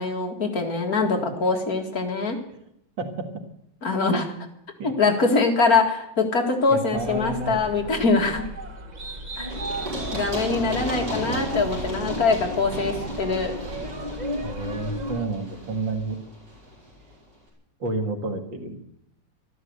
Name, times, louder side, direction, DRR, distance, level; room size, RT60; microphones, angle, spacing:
voice 1, 0.0-2.4 3.8-4.3 4.8-8.4 9.4-9.5 10.1-13.5, left 4 dB, 50° left, 3 dB, 2.4 m, -23 dB
voice 2, 6.7-7.7 14.4-16.2 17.8-18.8, right 3 dB, 80° right, 4 dB, 2.6 m, -30 dB
sound 1, 6.9-15.3, equal, 30° right, 0.9 m, -34 dB
Run, 9.5-17.1, equal, 55° right, 6.0 m, -35 dB
12.5 x 12.5 x 8.1 m, 0.76 s
omnidirectional pair, 2.0 m